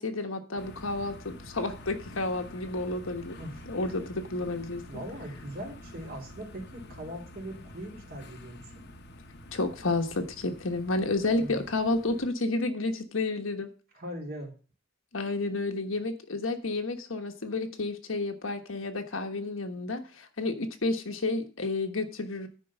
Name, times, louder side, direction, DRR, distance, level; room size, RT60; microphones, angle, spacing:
voice 1, 0.0-3.4 3.7-4.8 9.5-13.7 15.1-22.5, left 2 dB, 85° left, 5 dB, 1.3 m, -31 dB
sound 1, 0.6-12.3, left 1 dB, 55° left, 1.0 m, -48 dB
voice 2, 4.9-8.8 11.2-11.6 13.9-14.5, equal, 50° right, 0 dB, 3.0 m, -40 dB
10.0 x 4.5 x 7.0 m, 0.38 s
head